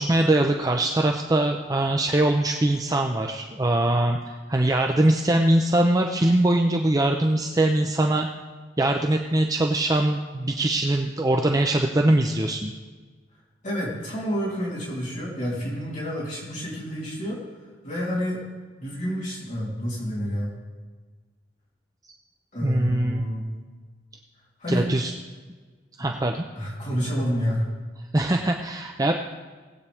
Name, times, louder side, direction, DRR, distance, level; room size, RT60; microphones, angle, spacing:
voice 1, 0.0-8.3 8.8-12.7 22.6-23.3 24.7-25.1 26.0-26.4 28.1-29.1, right 1 dB, 20° right, 3 dB, 0.6 m, -22 dB
voice 2, 13.6-17.4 17.8-18.4 18.8-20.6 22.5-23.5 24.6-24.9 26.6-27.7, equal, 45° left, -7 dB, 3.4 m, -29 dB
18.5 x 8.3 x 3.5 m, 1.4 s
head